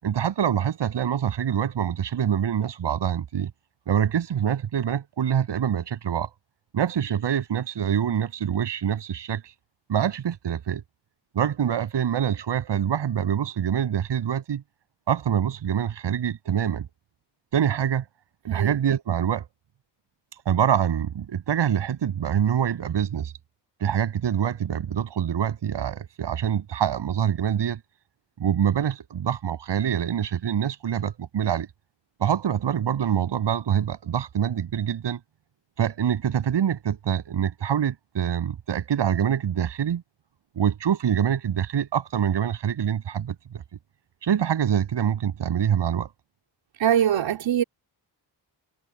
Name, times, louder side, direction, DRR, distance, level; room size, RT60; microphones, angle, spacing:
voice 1, 0.0-3.5 3.9-6.3 6.7-9.4 9.9-10.8 11.3-14.6 15.1-16.9 17.5-18.0 18.4-19.5 20.5-23.3 23.8-27.8 28.4-31.7 32.2-35.2 35.8-40.0 40.6-43.6 44.2-46.1, right 9 dB, 65° right, 7.7 m, -25 dB
voice 2, 18.5-18.8 46.8-47.6, right 10 dB, 85° right, 3.4 m, -22 dB
wide cardioid pair, 180°, 45 cm